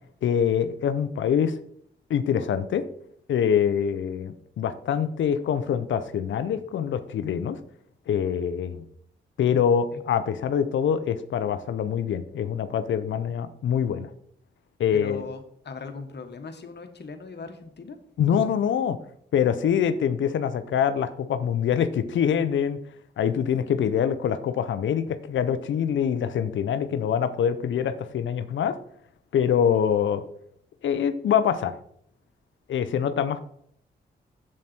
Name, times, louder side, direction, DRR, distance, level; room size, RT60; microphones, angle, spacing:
voice 1, 0.2-1.6 2.1-2.8 3.3-7.6 8.1-8.8 9.4-14.1 14.8-15.2 18.2-19.0 19.3-22.8 23.2-28.8 29.3-30.2 30.8-31.7 32.7-33.4, left 8 dB, 85° left, 12 dB, 0.7 m, -24 dB
voice 2, 14.9-18.0, left 4 dB, 60° left, 7 dB, 1.5 m, -39 dB
7.7 x 7.4 x 4.4 m, 0.67 s
supercardioid pair, 45°, 19 cm